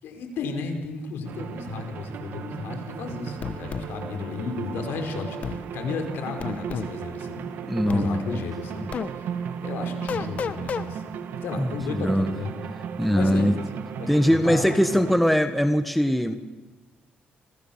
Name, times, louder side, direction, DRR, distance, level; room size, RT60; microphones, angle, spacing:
voice 1, 0.0-7.5 7.7-11.1 11.4-12.5 13.1-14.7, left 4 dB, 80° left, 5 dB, 5.1 m, -34 dB
sound 1, 1.2-15.2, right 7 dB, 60° right, 1.8 m, -35 dB
sound 2, 3.4-3.9 5.4-5.6 6.4-6.9 7.9-8.1 8.9-9.1 10.1-10.9, left 7 dB, 40° left, 1.1 m, -30 dB
voice 2, 7.7-8.4 8.7-8.9 11.6-12.3 13.0-13.5 14.1-16.3, equal, ahead, 8 dB, 1.3 m, -22 dB
29.5 x 27.0 x 7.3 m, 1.2 s
cardioid pair, 160°, 4 cm